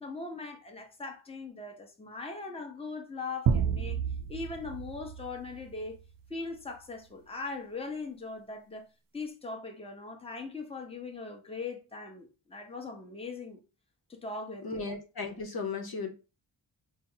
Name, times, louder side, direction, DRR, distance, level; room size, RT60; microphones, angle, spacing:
voice 1, 0.0-4.0 4.3-6.0 6.3-8.8 9.1-13.6 14.1-14.9, left 3 dB, 10° left, 0.9 m, -40 dB
sound 1, 3.5-6.3, right 7 dB, 50° right, 0.5 m, -31 dB
voice 2, 14.6-16.1, left 4 dB, 50° left, 0.9 m, -35 dB
4.1 x 2.0 x 3.8 m
cardioid pair, 55°, 47 cm